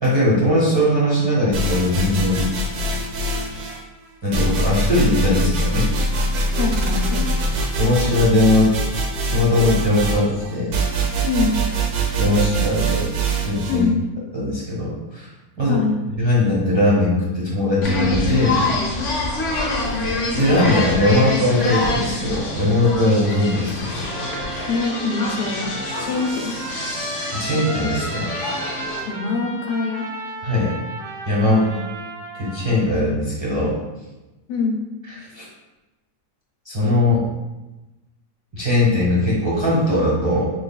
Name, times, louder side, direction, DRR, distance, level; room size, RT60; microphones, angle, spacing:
voice 1, 0.0-2.4 4.2-5.9 7.8-8.7 9.3-10.7 12.1-13.1 13.4-13.9 14.3-15.3 15.6-15.8 16.2-18.6 20.3-23.9 27.3-28.3 30.4-30.7 31.2-31.6 32.3-33.7 35.3-35.4 36.7-37.2 38.5-40.5, left 1 dB, 25° right, -7 dB, 0.7 m, -19 dB
sound 1, 1.5-3.8 4.3-13.8, right 2 dB, 75° right, 1.1 m, -23 dB
voice 2, 6.6-7.3 11.2-11.6 13.7-14.0 15.7-16.0 24.7-25.7 26.0-26.5 29.0-30.0 31.5-31.7 34.5-34.8, left 4 dB, 80° left, 0 dB, 1.2 m, -23 dB
sound 2, 17.8-29.0, left 2 dB, 55° left, 1.0 m, -26 dB
Trumpet, 24.1-32.8, right 2 dB, 90° right, 1.4 m, -34 dB
4.9 x 3.2 x 2.2 m, 1.1 s
omnidirectional pair, 1.7 m